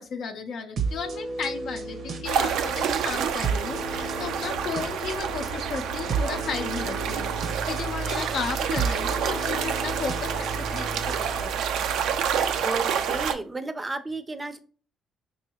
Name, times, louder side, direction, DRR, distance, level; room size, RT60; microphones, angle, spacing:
voice 1, 0.0-11.6, left 5 dB, 70° left, 4 dB, 0.5 m, -34 dB
sound 1, 0.8-11.4, right 3 dB, 70° right, 0.7 m, -34 dB
sound 2, 2.2-13.3, right 7 dB, 90° right, 0.4 m, -28 dB
voice 2, 12.6-14.6, right 3 dB, 20° right, 10 dB, 0.5 m, -32 dB
4.7 x 2.6 x 2.8 m, 0.40 s
cardioid pair, 90°, 0 cm